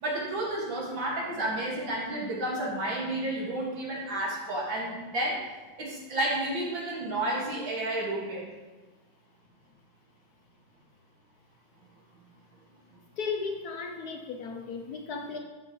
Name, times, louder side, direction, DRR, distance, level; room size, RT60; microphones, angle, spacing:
voice 1, 0.0-5.4 5.8-8.5, right 1 dB, 70° right, -4 dB, 2.8 m, -31 dB
voice 2, 13.2-15.4, left 5 dB, 65° left, 3 dB, 1.0 m, -35 dB
11.5 x 7.2 x 3.2 m, 1.2 s
omnidirectional pair, 2.2 m